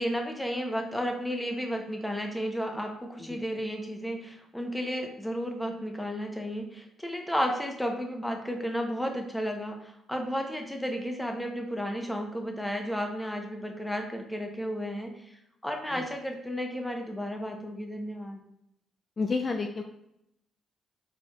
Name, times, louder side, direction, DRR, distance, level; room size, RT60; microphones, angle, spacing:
voice 1, 0.0-15.1 15.6-18.4, equal, 5° left, 3 dB, 0.7 m, -33 dB
voice 2, 19.2-19.8, left 4 dB, 35° left, 4 dB, 0.4 m, -30 dB
4.4 x 4.3 x 2.3 m, 0.79 s
cardioid pair, 90°, 0 cm